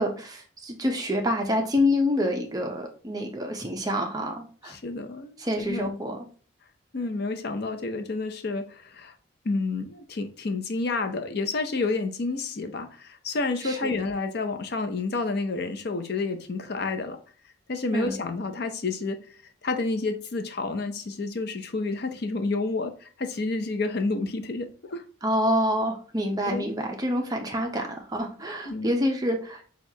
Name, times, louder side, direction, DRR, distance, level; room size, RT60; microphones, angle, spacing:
voice 1, 0.0-4.8 5.4-6.2 13.6-14.0 17.9-18.2 25.2-29.7, left 1 dB, 20° right, 0.6 m, -27 dB
voice 2, 4.6-5.9 6.9-9.1 9.4-17.2 17.7-19.2 19.6-25.0 26.5-26.7 28.7-28.9, left 3 dB, 50° left, 0.5 m, -30 dB
6.1 x 2.4 x 2.7 m
head